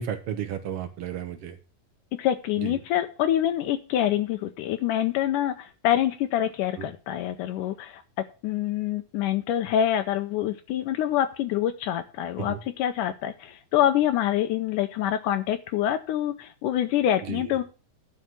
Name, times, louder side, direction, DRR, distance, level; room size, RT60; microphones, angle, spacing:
voice 1, 0.0-1.5 2.6-2.7 6.8-6.9 12.4-12.6 17.3-17.4, right 9 dB, 70° right, 9 dB, 1.4 m, -33 dB
voice 2, 2.2-8.0 8.4-17.6, left 11 dB, 75° left, 9 dB, 2.1 m, -26 dB
11.0 x 5.7 x 7.4 m, 0.35 s
omnidirectional pair, 3.9 m